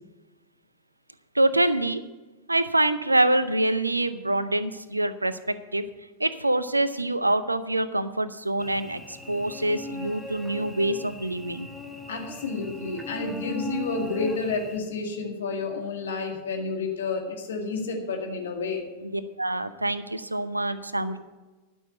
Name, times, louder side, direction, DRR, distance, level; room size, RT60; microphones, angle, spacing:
voice 1, 1.3-2.0 2.5-5.9 6.2-11.7 19.0-21.2, right 1 dB, 85° right, 14 dB, 0.6 m, -25 dB
Cricket / Buzz, 8.6-14.8, left 2 dB, ahead, 1.5 m, -39 dB
voice 2, 12.1-18.9, left 3 dB, 65° left, 2 dB, 2.0 m, -30 dB
12.0 x 6.3 x 7.8 m, 1.2 s
figure-of-eight pair, 90°, 0 cm